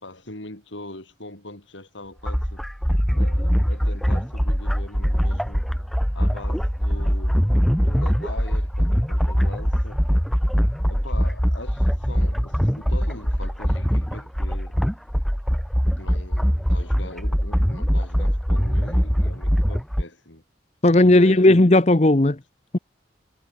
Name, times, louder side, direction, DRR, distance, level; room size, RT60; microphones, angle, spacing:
voice 1, 0.0-2.6 3.1-5.7 6.1-7.5 7.7-10.0 10.9-14.8 16.0-20.4 21.0-21.6, left 2 dB, 90° left, 6.5 m, -41 dB
sound 1, 2.2-20.0, equal, ahead, 0.6 m, -22 dB
voice 2, 20.8-22.4, left 1 dB, 35° left, 0.9 m, -15 dB
head